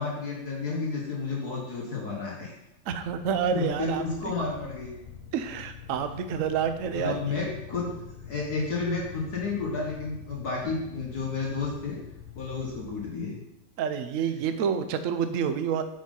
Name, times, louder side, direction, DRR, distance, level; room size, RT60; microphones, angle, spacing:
voice 1, 0.0-2.5 3.5-4.9 6.9-12.0 12.4-13.4 14.2-14.3, left 4 dB, 55° left, -2 dB, 1.8 m, -31 dB
sound 1, 2.9-13.1, left 8 dB, 40° left, 3.5 m, -45 dB
voice 2, 2.9-4.0 5.3-7.4 13.8-15.8, right 7 dB, 75° right, 9 dB, 0.7 m, -28 dB
8.7 x 5.2 x 5.4 m, 0.87 s
omnidirectional pair, 2.1 m